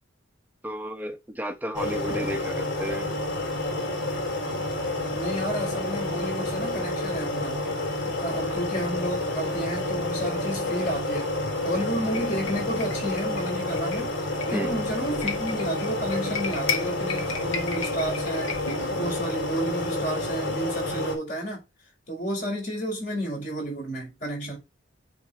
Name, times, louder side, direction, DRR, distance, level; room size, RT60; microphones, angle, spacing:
voice 1, 0.6-3.1 14.5-14.8, equal, 10° right, 0.9 m, -32 dB
sound 1, 1.7-21.2, left 2 dB, 60° left, 3.6 m, -29 dB
voice 2, 5.1-7.7 8.0-11.3 11.6-14.1 14.4-21.6 22.1-24.6, right 1 dB, 40° left, 5.6 m, -31 dB
sound 2, 12.1-18.8, left 6 dB, 85° left, 1.7 m, -36 dB
9.3 x 3.8 x 4.5 m
head